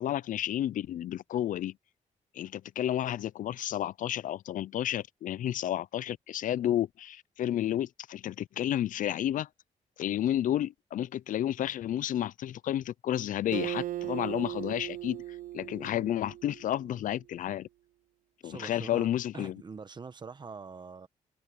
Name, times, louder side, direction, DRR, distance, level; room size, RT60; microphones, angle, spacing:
voice 1, 0.0-1.7 2.4-9.5 10.0-15.2 15.5-17.7 18.4-19.6, left 12 dB, 75° left, 0.4 m, -31 dB
Acoustic guitar, 13.5-17.0, right 14 dB, 80° right, 0.7 m, -38 dB
voice 2, 18.4-19.1 19.3-21.1, right 5 dB, 35° right, 1.2 m, -44 dB
wide cardioid pair, 140°, 14 cm